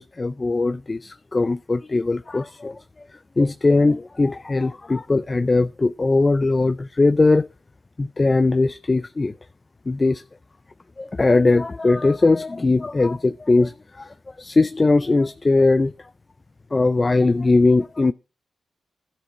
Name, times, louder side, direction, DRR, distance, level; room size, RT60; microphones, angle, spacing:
voice 1, 0.0-2.8 3.4-7.5 8.0-9.3 9.9-10.2 11.0-15.9 16.7-18.1, left 3 dB, 35° left, 0.4 m, -20 dB
12.5 x 6.0 x 4.2 m
supercardioid pair, 45°, 0 cm